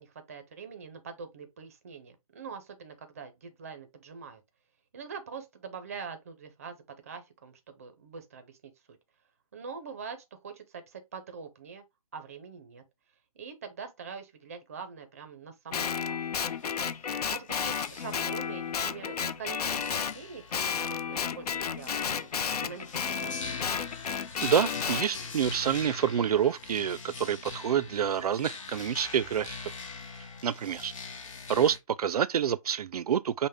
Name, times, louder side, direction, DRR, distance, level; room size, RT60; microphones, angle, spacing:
voice 1, 0.0-4.4 4.9-8.7 9.5-11.8 12.1-12.8 13.4-16.3 17.0-21.9 22.6-23.5, right 5 dB, 25° right, 0.5 m, -44 dB
Guitar, 15.7-20.2 20.5-25.1, left 7 dB, 90° left, 0.5 m, -32 dB
sound 1, 16.4-31.8, left 4 dB, 55° left, 0.9 m, -44 dB
voice 2, 24.4-29.6 30.4-30.9 31.5-33.5, right 8 dB, 85° right, 0.4 m, -27 dB
5.4 x 2.1 x 3.5 m
hypercardioid pair, 170°, 19 cm